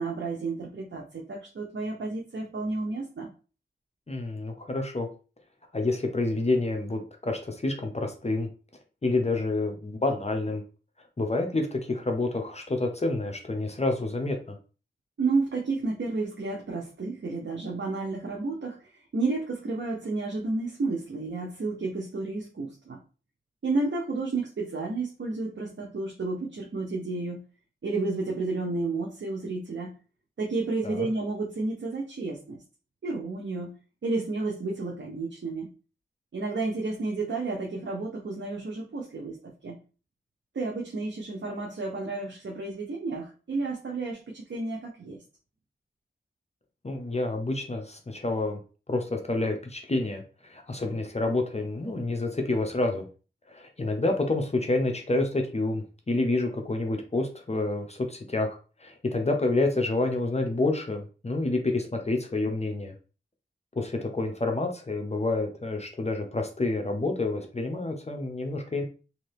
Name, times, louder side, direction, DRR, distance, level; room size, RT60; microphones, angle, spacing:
voice 1, 0.0-3.3 15.2-23.0 23.6-27.4 27.8-29.9 30.4-32.6 33.0-33.7 34.0-35.7 36.3-39.4 39.6-39.8 40.5-45.2, right 3 dB, 65° right, -1 dB, 0.7 m, -31 dB
voice 2, 4.1-5.1 5.7-8.5 9.0-10.6 11.2-14.6 30.8-31.1 46.8-48.6 48.9-53.1 53.5-58.5 58.8-62.9 63.8-68.8, left 2 dB, 30° left, 3 dB, 0.7 m, -28 dB
2.8 x 2.6 x 3.3 m, 0.35 s
wide cardioid pair, 55°, 21 cm